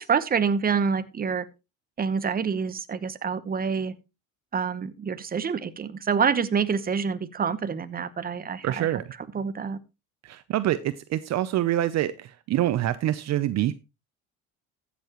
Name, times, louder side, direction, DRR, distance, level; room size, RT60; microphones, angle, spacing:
voice 1, 0.0-1.4 2.0-3.9 4.5-8.9 9.3-9.8, right 6 dB, 30° right, 1.0 m, -27 dB
voice 2, 8.6-9.0 10.2-13.7, right 13 dB, 55° right, 0.7 m, -26 dB
15.0 x 7.2 x 3.0 m
supercardioid pair, 90°, 32 cm